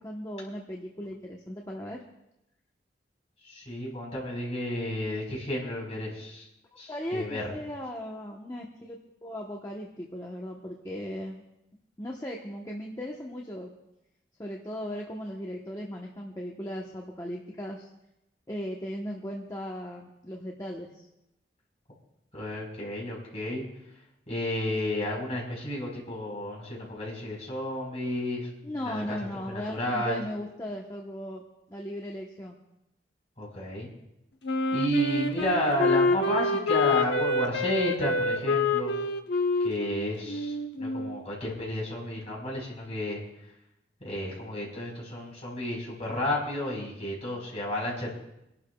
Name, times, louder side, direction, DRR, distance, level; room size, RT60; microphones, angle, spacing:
voice 1, 0.0-2.0 6.9-11.4 12.0-13.7 14.4-17.9 18.5-21.1 28.6-31.4 31.7-32.6, equal, 20° left, -1 dB, 1.0 m, -37 dB
voice 2, 3.4-6.4 6.8-7.5 22.3-23.6 24.3-29.2 29.5-30.2 33.4-33.9 34.7-39.0 39.6-43.2 44.0-48.1, left 1 dB, 40° left, -3 dB, 4.4 m, -32 dB
Wind instrument woodwind instrument, 34.4-41.2, left 3 dB, 80° left, 0.9 m, -27 dB
29.0 x 12.0 x 2.3 m, 0.87 s
head